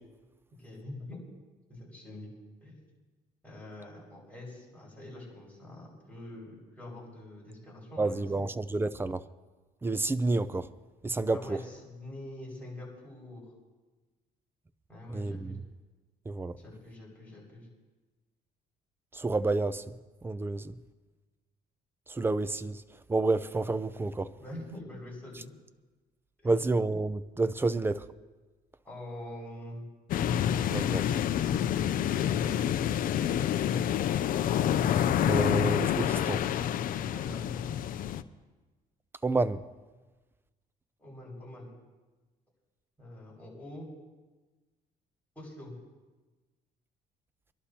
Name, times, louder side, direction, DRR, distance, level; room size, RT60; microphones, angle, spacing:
voice 1, 0.6-1.2 1.7-2.3 2.6-2.8 3.4-8.5 11.3-13.5 14.9-15.6 16.6-17.7 24.4-25.5 26.4-26.5 28.8-29.8 32.1-32.5 36.9-37.4 41.0-41.7 43.0-43.9 45.4-45.7, left 1 dB, 10° left, 5.7 m, -45 dB
voice 2, 8.0-9.2 9.8-10.7 11.0-11.6 15.1-15.6 16.3-16.6 19.1-19.9 20.2-20.7 22.1-22.8 23.1-24.3 26.4-28.1 30.7-31.1 35.2-36.4 39.2-39.6, right 2 dB, 15° right, 0.5 m, -29 dB
sound 1, 30.1-38.2, left 10 dB, 55° left, 0.5 m, -28 dB
25.5 x 11.5 x 2.9 m
cardioid pair, 110°, 17 cm